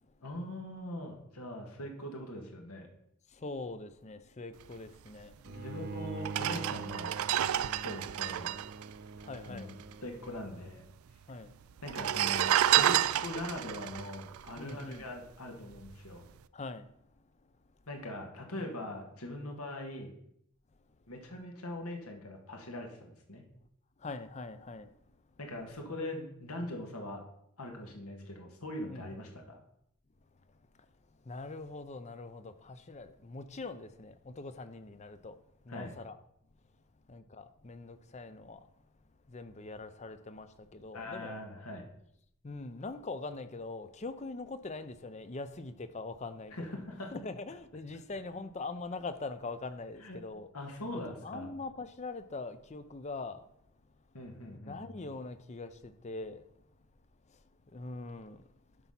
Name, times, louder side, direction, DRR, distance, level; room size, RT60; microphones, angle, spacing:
voice 1, 0.2-2.9 5.4-7.1 7.8-8.5 9.5-10.8 11.8-12.5 12.8-16.3 17.9-20.1 21.1-23.5 25.4-27.2 27.6-29.6 35.7-36.0 40.9-41.9 46.5-47.1 50.0-50.2 50.5-51.5 54.1-54.8, left 1 dB, 85° left, 1.8 m, -42 dB
voice 2, 3.3-5.3 9.2-9.7 11.3-11.5 14.6-15.0 16.5-16.9 24.0-24.9 28.9-29.1 31.2-36.2 37.1-38.7 39.3-41.3 42.4-46.5 47.1-50.5 50.9-53.5 54.5-56.4 57.3-57.4 57.7-58.5, left 3 dB, 30° left, 0.5 m, -42 dB
Bowed string instrument, 5.4-10.7, right 4 dB, 45° right, 0.7 m, -44 dB
sound 1, 5.5-5.6 6.2-9.9 10.1-10.2 10.4-11.1 11.8-15.3 15.7-15.9, right 11 dB, 75° right, 0.4 m, -30 dB
11.5 x 4.1 x 5.7 m
head